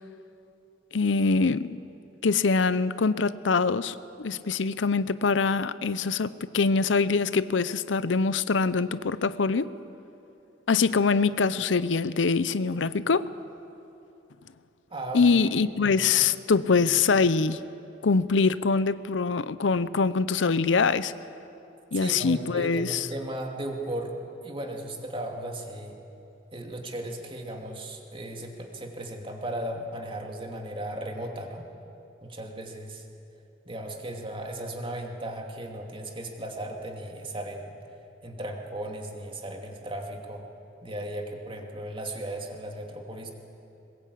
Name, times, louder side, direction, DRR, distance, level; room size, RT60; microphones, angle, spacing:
voice 1, 0.9-1.8 2.2-9.7 10.7-13.3 15.1-17.6 18.0-21.1 21.9-23.1, left 4 dB, 80° left, 15 dB, 0.6 m, -24 dB
voice 2, 14.9-15.2 15.7-15.9 21.9-24.1 24.4-26.0 26.5-31.7 32.2-33.0 33.6-37.7 38.2-40.5 40.8-43.3, right 1 dB, 30° right, 2 dB, 2.6 m, -36 dB
21.5 x 21.0 x 8.5 m, 2.8 s
head